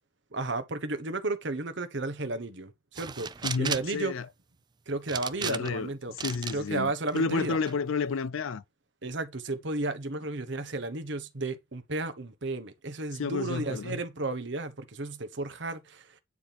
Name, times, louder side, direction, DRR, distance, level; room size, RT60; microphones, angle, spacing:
voice 1, 0.3-3.3 3.6-4.1 4.9-6.1 6.5-7.6 9.0-16.1, right 2 dB, 60° right, 1.2 m, -33 dB
sound 1, 2.9-4.0 5.1-5.8 6.2-6.6 7.1-7.7, right 7 dB, 20° right, 0.3 m, -35 dB
voice 2, 3.4-4.3 5.4-5.9 6.2-8.6 13.1-14.0, left 4 dB, 70° left, 0.5 m, -31 dB
9.8 x 4.4 x 3.5 m
head